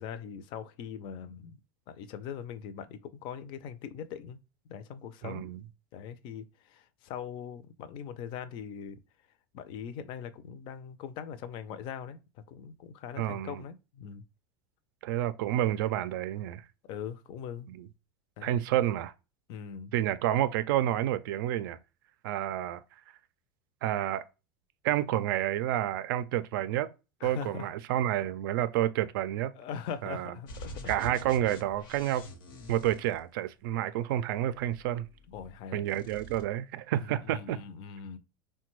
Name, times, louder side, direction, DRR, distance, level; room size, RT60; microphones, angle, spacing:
voice 1, 0.0-1.6 1.9-4.4 4.7-5.5 5.9-9.0 9.5-14.2 16.9-17.7 18.4-18.6 19.5-19.9 27.2-27.7 29.5-31.2 31.5-31.6 35.3-35.8 36.9-38.2, left 7 dB, 45° left, 0.4 m, -41 dB
voice 2, 5.2-5.6 13.2-13.6 15.0-16.6 17.7-17.9 18.4-19.1 19.9-21.8 22.2-22.8 23.8-24.3 24.8-26.9 27.2-29.5 30.0-30.3 30.9-32.3 32.7-35.1 35.7-37.6, right 12 dB, 75° right, 0.4 m, -29 dB
sound 1, 30.5-33.8 34.5-35.6 35.8-36.4, equal, 90° left, 0.9 m, -45 dB
3.5 x 2.2 x 3.0 m
supercardioid pair, 140°, 11 cm